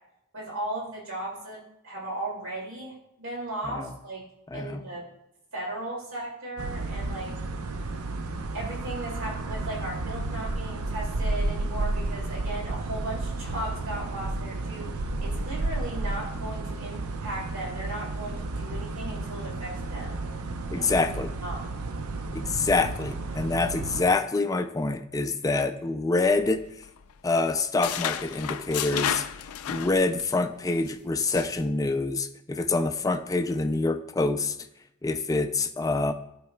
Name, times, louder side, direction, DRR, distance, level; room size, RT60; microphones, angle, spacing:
voice 1, 0.3-1.6 1.8-4.2 4.5-5.0 5.5-7.3 8.5-14.9 15.2-20.2 20.8-20.9 21.4-21.7, right 1 dB, 70° right, -4 dB, 2.3 m, -36 dB
voice 2, 4.5-4.8 20.7-21.3 22.3-26.6 27.2-29.3 29.7-34.6 35.0-36.1, left 3 dB, 15° left, 8 dB, 0.3 m, -26 dB
sound 1, 6.6-24.0, right 2 dB, 90° right, 0.6 m, -32 dB
sound 2, 26.2-27.1 27.4-30.4 30.7-30.9 31.3-31.6, left 9 dB, 85° left, 0.4 m, -32 dB
13.5 x 4.7 x 2.2 m, 0.83 s
head